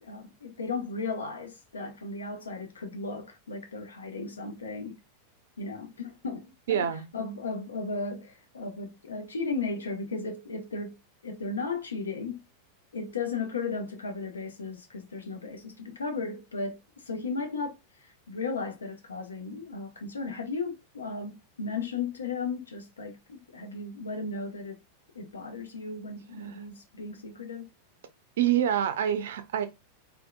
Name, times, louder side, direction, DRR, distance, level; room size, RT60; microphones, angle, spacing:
voice 1, 0.0-5.0 5.6-6.9 7.1-11.0 11.2-12.4 12.9-24.8 25.1-27.7, left 4 dB, 70° left, 0.6 m, -35 dB
voice 2, 6.7-7.1 28.4-29.7, right 10 dB, 60° right, 0.4 m, -26 dB
2.8 x 2.2 x 2.2 m
figure-of-eight pair, 90°, 0 cm